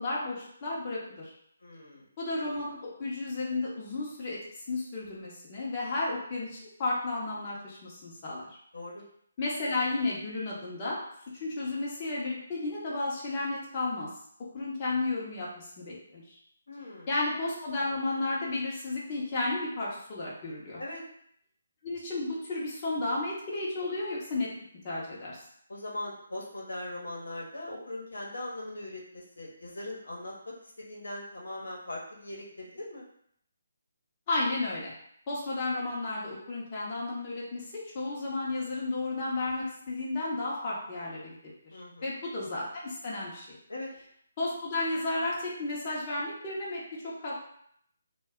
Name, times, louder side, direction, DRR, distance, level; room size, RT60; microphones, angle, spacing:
voice 1, 0.0-1.3 2.2-8.5 9.4-11.0 11.3-14.1 14.5-16.4 17.1-20.8 21.8-24.5 24.8-25.4 34.3-34.9 35.3-41.4 42.0-43.6 44.4-47.4, left 2 dB, 30° left, -6 dB, 0.7 m, -33 dB
voice 2, 1.6-2.1 8.7-9.0 16.7-17.1 20.8-21.0 25.7-33.1 41.7-42.1 43.7-43.9, left 1 dB, 85° left, -2 dB, 0.8 m, -40 dB
2.2 x 2.1 x 3.5 m, 0.68 s
hypercardioid pair, 160°, 0 cm